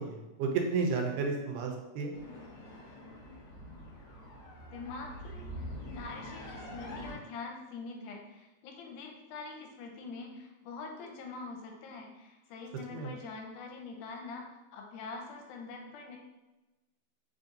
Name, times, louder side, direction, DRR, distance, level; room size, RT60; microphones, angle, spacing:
voice 1, 0.0-2.1 12.9-13.1, right 4 dB, 90° right, 2 dB, 2.3 m, -32 dB
sound 1, 2.1-7.1, equal, 65° left, 1.7 m, -45 dB
voice 2, 4.7-5.7 5.9-14.4 14.7-16.2, left 4 dB, 85° left, 2 dB, 2.1 m, -44 dB
5.1 x 2.6 x 4.0 m, 1.1 s
omnidirectional pair, 3.7 m